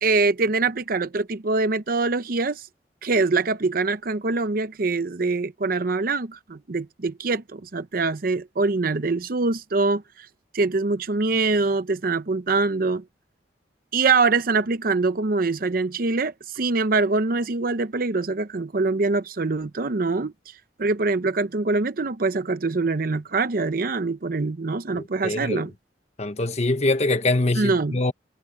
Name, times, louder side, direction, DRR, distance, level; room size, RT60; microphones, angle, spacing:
voice 1, 0.0-2.7 3.0-10.3 10.5-13.0 13.9-20.5 20.8-25.7 27.6-28.0, right 3 dB, 55° right, 0.7 m, -24 dB
voice 2, 24.9-25.7 26.2-28.1, left 2 dB, 40° left, 1.2 m, -24 dB
head